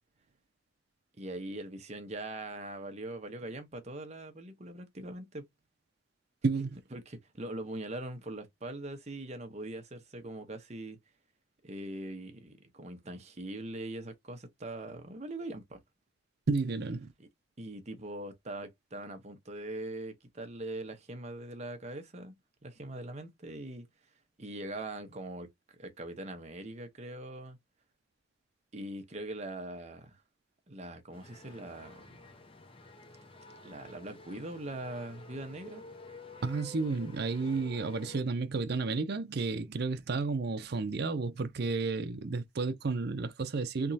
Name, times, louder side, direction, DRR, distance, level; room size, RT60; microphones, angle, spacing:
voice 1, 1.2-5.4 6.9-11.0 11.6-15.8 17.2-17.3 17.6-22.3 22.6-23.9 24.4-27.6 28.7-30.2 30.7-32.3 33.6-35.8, right 1 dB, 35° right, 0.9 m, -42 dB
voice 2, 6.4-6.8 16.5-17.1 36.4-43.9, right 4 dB, 55° right, 0.5 m, -32 dB
sound 1, 31.1-38.2, left 1 dB, 30° left, 0.7 m, -51 dB
3.5 x 3.0 x 2.7 m
head